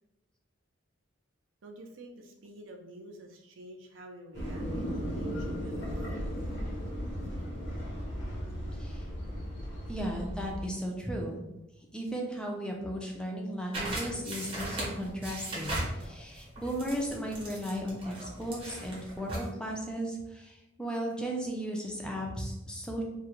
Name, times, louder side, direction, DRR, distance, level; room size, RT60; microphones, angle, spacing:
voice 1, 1.6-6.3, right 1 dB, 70° right, 3 dB, 0.4 m, -49 dB
sound 1, 4.3-10.7, equal, 60° left, 0.7 m, -36 dB
voice 2, 8.7-9.1 9.9-11.4 11.9-23.0, equal, 5° left, 0 dB, 0.3 m, -35 dB
sound 2, 13.7-19.5, right 1 dB, 25° right, 0.7 m, -38 dB
2.3 x 2.0 x 2.9 m, 0.94 s
head